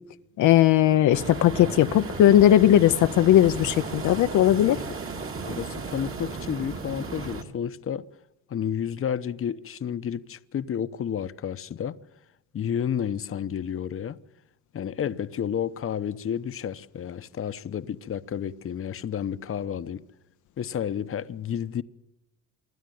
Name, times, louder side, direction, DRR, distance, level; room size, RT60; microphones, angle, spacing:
voice 1, 0.4-4.8, left 12 dB, 75° left, 0.7 m, -18 dB
sound 1, 1.1-7.4, right 4 dB, 45° right, 2.6 m, -35 dB
voice 2, 5.4-8.1 8.5-12.0 12.5-14.2 14.7-20.0 20.6-21.8, left 8 dB, 45° left, 0.9 m, -31 dB
25.5 x 12.5 x 9.3 m
cardioid pair, 90°, 30 cm